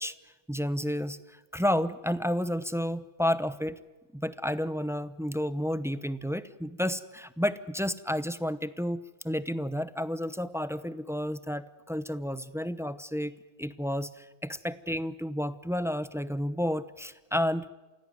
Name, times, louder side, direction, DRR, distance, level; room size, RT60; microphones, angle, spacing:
voice 1, 0.5-3.8 4.1-9.0 9.2-13.3 13.6-17.6, equal, 5° right, 13 dB, 0.7 m, -31 dB
28.0 x 17.0 x 9.5 m, 1.1 s
omnidirectional pair, 1.2 m